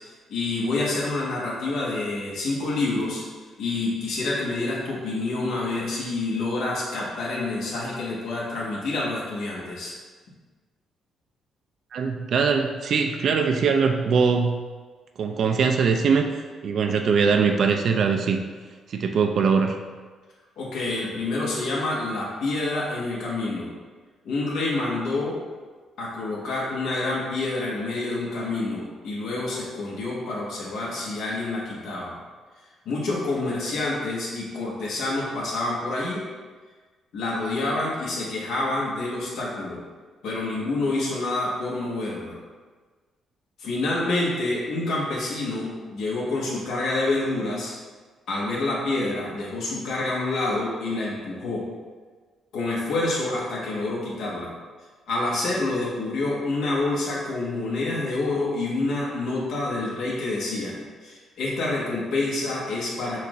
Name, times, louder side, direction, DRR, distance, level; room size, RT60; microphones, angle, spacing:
voice 1, 0.3-3.2 3.6-9.9 20.6-23.7 24.2-25.4 26.0-32.2 32.8-36.2 37.1-39.8 40.2-42.3 43.6-47.7 48.3-51.6 52.5-54.5 55.1-60.7 61.0-63.2, left 2 dB, 75° left, -4 dB, 1.2 m, -27 dB
voice 2, 11.9-14.6 15.2-16.3 16.6-18.4 18.9-19.8, right 5 dB, 60° right, 5 dB, 0.3 m, -21 dB
5.8 x 2.5 x 3.0 m, 1.4 s
cardioid pair, 90°, 0 cm